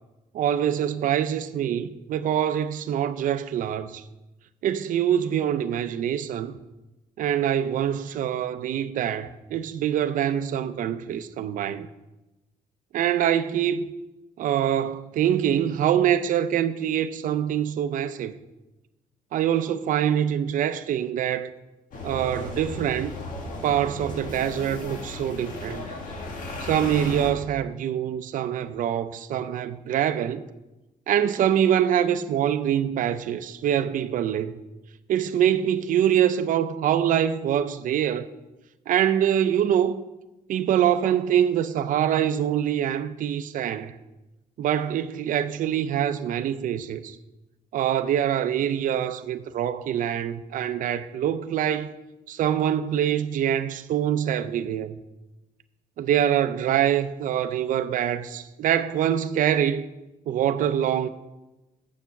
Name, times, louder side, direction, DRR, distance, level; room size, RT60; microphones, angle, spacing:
voice 1, 0.3-4.0 4.6-6.6 7.2-11.9 12.9-13.8 14.4-18.3 19.3-21.5 22.0-23.2 23.6-25.9 26.6-30.4 31.1-34.5 35.1-38.3 38.9-40.0 40.5-43.9 44.6-47.2 47.7-51.9 52.3-55.0 56.0-59.8 60.3-61.1, right 10 dB, 65° right, 0.6 m, -24 dB
sound 1, 21.9-27.3, left 2 dB, 65° left, 1.6 m, -35 dB
7.3 x 6.9 x 5.9 m
cardioid pair, 125°, 15 cm